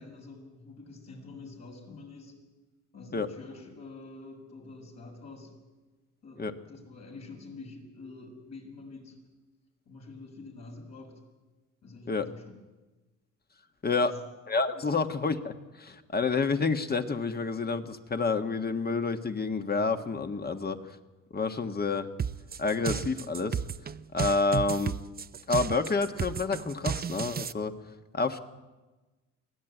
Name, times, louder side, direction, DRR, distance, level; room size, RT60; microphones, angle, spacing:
voice 1, 0.0-2.4 2.9-5.6 6.2-9.2 9.9-11.2 11.8-12.4 13.8-14.2 14.7-14.9 20.4-20.6, left 3 dB, 60° left, 1 dB, 7.1 m, -47 dB
voice 2, 14.5-20.8 21.3-22.1 22.6-23.6 24.1-25.0 25.5-27.7 28.1-28.4, left 4 dB, 30° left, 7 dB, 1.6 m, -29 dB
sound 1, 22.2-27.5, right 7 dB, 30° right, 0.6 m, -33 dB
23.5 x 16.5 x 9.1 m, 1.2 s
cardioid pair, 90°, 30 cm